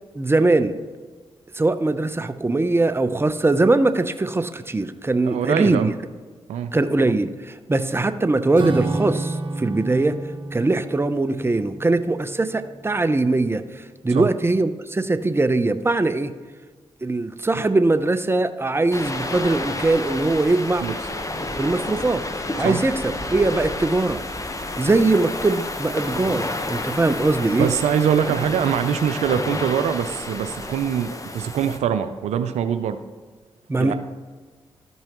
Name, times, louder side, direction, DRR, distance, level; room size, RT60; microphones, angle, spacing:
voice 1, 0.1-0.8 1.5-5.9 6.7-10.2 10.5-16.3 17.0-20.9 21.6-24.2 24.8-27.7 33.7-33.9, right 2 dB, 20° right, 11 dB, 0.7 m, -21 dB
voice 2, 5.2-5.9 6.5-6.7 14.1-14.3 20.8-20.9 22.6-22.8 27.5-33.0 33.8-33.9, right 8 dB, 85° right, 10 dB, 0.5 m, -23 dB
Acoustic guitar / Strum, 8.5-13.3, right 2 dB, 45° right, 1.1 m, -31 dB
sound 1, 18.9-31.8, left 2 dB, 30° left, 1.1 m, -30 dB
13.5 x 5.5 x 3.0 m, 1.4 s
supercardioid pair, 40°, 11 cm